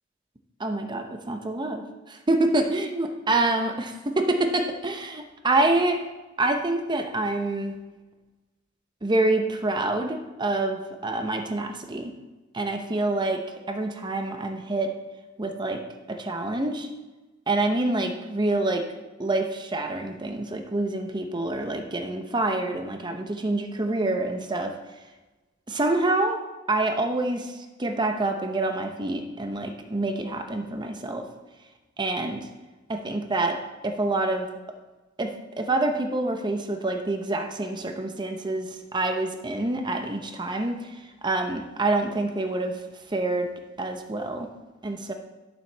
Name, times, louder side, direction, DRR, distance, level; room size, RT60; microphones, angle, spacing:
voice 1, 0.6-6.0 6.4-7.7 9.0-12.1 12.5-14.9 15.4-15.8 16.1-16.9 17.5-18.8 19.2-24.7 25.7-26.4 26.7-31.2 32.0-32.5 32.9-34.5 35.2-40.9 41.2-42.8 43.1-43.5 43.8-44.5 44.8-45.1, right 2 dB, 25° right, 5 dB, 0.8 m, -27 dB
11.5 x 7.3 x 3.4 m, 1.2 s
head